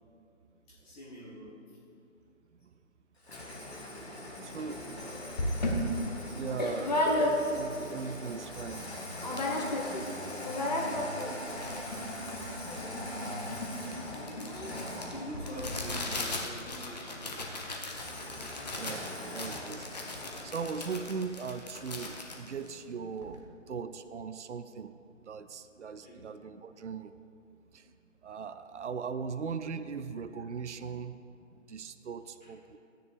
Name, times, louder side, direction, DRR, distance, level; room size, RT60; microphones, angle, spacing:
voice 1, 0.7-1.8 4.5-5.3 14.8-18.0 26.0-26.3 32.4-32.5, equal, 5° left, -9 dB, 1.1 m, -46 dB
Engine starting, 3.2-16.6 17.9-21.1, left 1 dB, 55° left, 2.6 m, -42 dB
voice 2, 4.4-4.8 6.3-7.0 7.5-8.8 12.7-12.9 18.7-19.8 20.1-24.9 25.2-27.1 27.7-27.9 28.2-31.2 31.7-32.8, right 5 dB, 60° right, 11 dB, 0.6 m, -39 dB
sound 1, 4.9-5.0 5.4-7.8 8.2-8.3 8.4-8.9 9.2-10.0 10.3-23.4, left 1 dB, 30° left, 1.1 m, -34 dB
14.5 x 9.9 x 3.3 m, 2.5 s
figure-of-eight pair, 150°, 39 cm